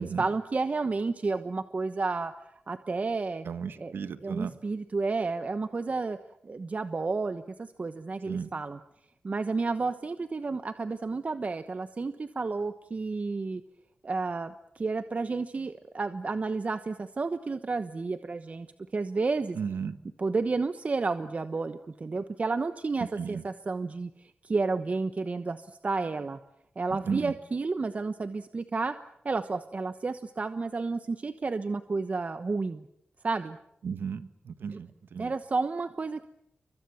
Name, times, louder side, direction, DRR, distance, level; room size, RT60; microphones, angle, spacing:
voice 1, 0.0-2.3 2.7-3.5 3.8-3.9 4.2-6.2 6.4-8.8 9.2-13.6 14.0-18.7 18.9-19.6 20.2-26.4 26.8-28.9 29.2-32.8 33.2-33.6 35.2-36.2, right 3 dB, 40° right, 10 dB, 1.1 m, -31 dB
voice 2, 3.4-4.5 8.3-8.5 19.6-20.0 23.0-23.4 27.1-27.3 33.8-35.3, right 6 dB, 90° right, 11 dB, 1.6 m, -35 dB
29.5 x 24.0 x 7.1 m, 0.75 s
wide cardioid pair, 90°, 4 cm